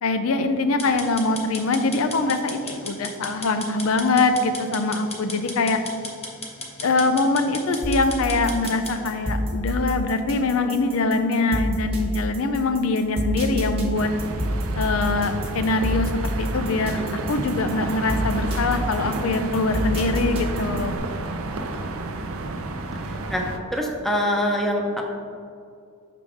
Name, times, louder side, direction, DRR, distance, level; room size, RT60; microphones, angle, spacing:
voice 1, 0.0-5.8 6.8-14.1 14.8-16.1 16.4-17.0 17.3-21.0, left 3 dB, 70° left, 8 dB, 0.5 m, -23 dB
sound 1, 0.8-9.0, left 3 dB, 30° left, 1.0 m, -36 dB
sound 2, 7.8-21.0, equal, 30° right, 1.1 m, -28 dB
sound 3, 13.9-23.6, right 2 dB, 75° right, 0.5 m, -31 dB
voice 2, 23.0-23.4 23.7-25.0, equal, ahead, 0 dB, 0.7 m, -24 dB
6.2 x 4.9 x 3.5 m, 2.4 s
head